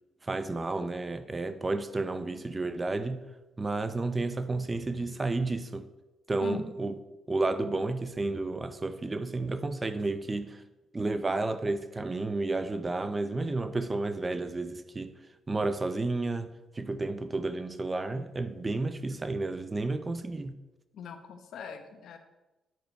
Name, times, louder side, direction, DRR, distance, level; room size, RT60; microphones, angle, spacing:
voice 1, 0.2-3.2 3.6-5.9 6.3-6.9 7.3-10.6 10.9-15.1 15.5-20.5, right 2 dB, 25° right, 0.7 m, -31 dB
voice 2, 20.9-22.2, left 6 dB, 70° left, 1.1 m, -40 dB
9.4 x 6.8 x 4.5 m
cardioid pair, 90°, 0 cm